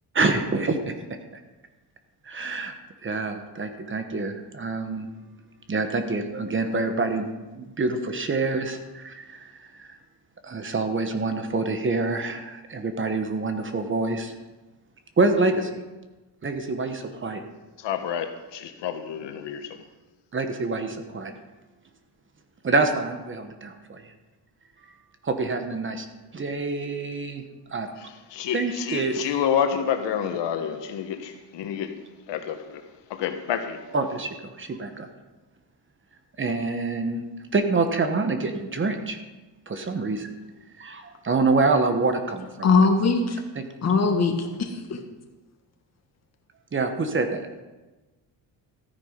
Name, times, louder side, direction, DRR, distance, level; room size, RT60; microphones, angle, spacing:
voice 1, 0.1-0.9 1.3-1.4 2.2-2.7 3.0-5.1 5.7-7.2 7.5-10.0 10.4-14.3 15.2-15.8 16.4-17.4 20.3-21.3 22.6-24.0 25.2-26.1 26.3-27.9 28.5-29.2 33.9-35.1 36.4-37.2 37.5-39.2 39.7-40.3 40.8-42.9 43.6-43.7 46.7-47.5, right 3 dB, 30° right, 1.1 m, -26 dB
voice 2, 17.8-19.8 28.0-31.9 32.3-32.8 33.1-33.8, left 8 dB, 85° left, 1.4 m, -29 dB
voice 3, 42.6-43.4 43.8-45.0, left 4 dB, 40° left, 1.7 m, -21 dB
14.0 x 9.5 x 5.1 m
cardioid pair, 145°, 42 cm